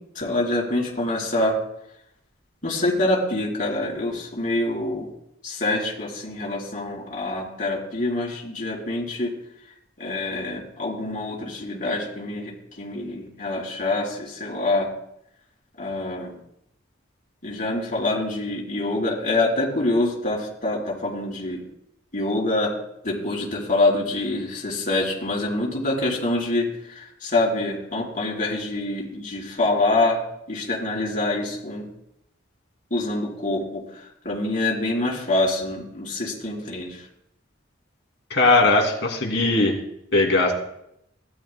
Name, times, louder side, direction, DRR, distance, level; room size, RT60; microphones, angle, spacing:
voice 1, 0.1-1.6 2.6-5.1 5.4-9.3 10.0-14.9 15.8-16.3 17.4-21.6 22.1-22.7 23.0-30.2 30.5-31.9 32.9-37.1, left 2 dB, 40° left, -4 dB, 4.0 m, -25 dB
voice 2, 38.3-39.8 40.1-40.5, left 2 dB, 65° left, 1 dB, 2.5 m, -19 dB
17.0 x 12.5 x 2.2 m, 0.77 s
head